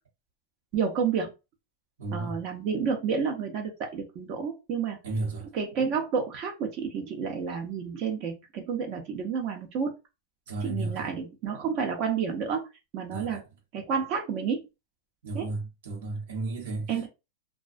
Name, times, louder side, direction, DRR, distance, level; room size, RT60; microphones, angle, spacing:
voice 1, 0.7-1.3 2.1-5.0 5.5-9.9 10.6-12.7 12.9-13.4 13.7-14.6 15.3-15.5 16.9-17.1, right 6 dB, 40° right, 0.6 m, -30 dB
voice 2, 2.0-2.4 5.0-5.5 10.5-11.1 13.1-13.4 15.2-17.1, right 2 dB, 80° right, 1.0 m, -33 dB
2.3 x 2.2 x 2.4 m
supercardioid pair, 150°, 0 cm